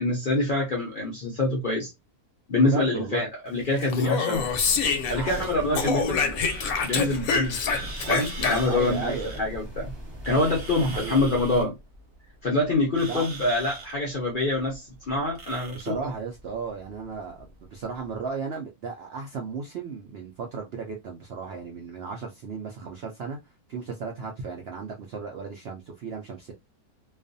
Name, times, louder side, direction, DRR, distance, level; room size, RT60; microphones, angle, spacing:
voice 1, 0.0-1.9 2.5-4.5 5.1-7.7 8.1-9.9 10.2-11.8 12.4-15.9, left 2 dB, 60° left, 0.5 m, -26 dB
voice 2, 2.6-3.3 5.1-6.0 8.6-9.4 10.8-11.2 13.0-13.3 15.7-23.4 23.7-26.5, right 5 dB, 75° right, 0.5 m, -35 dB
Speech, 3.8-5.5 5.8-8.9, left 5 dB, 75° left, 1.0 m, -26 dB
sound 1, 4.3-11.7, equal, 20° right, 0.9 m, -39 dB
sound 2, 6.5-18.2, right 3 dB, 45° right, 0.9 m, -43 dB
2.4 x 2.3 x 2.5 m
omnidirectional pair, 1.6 m